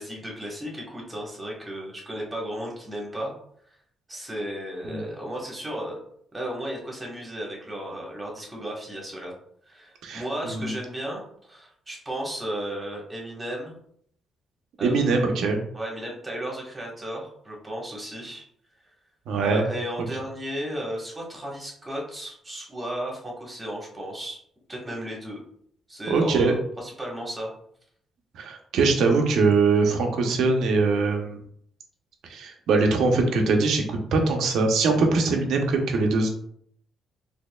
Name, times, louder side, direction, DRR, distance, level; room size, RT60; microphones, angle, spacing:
voice 1, 0.0-3.3 4.1-6.0 6.3-9.3 9.7-13.8 14.8-15.4 15.7-18.4 19.4-24.4 24.7-25.4 25.9-27.5, right 1 dB, 20° right, -2 dB, 1.3 m, -34 dB
voice 2, 10.0-10.7 14.8-15.6 19.3-19.6 26.1-26.5 28.3-31.4 32.3-36.3, right 3 dB, 75° right, 3 dB, 0.7 m, -22 dB
4.2 x 2.8 x 2.3 m, 0.65 s
cardioid pair, 90°, 0 cm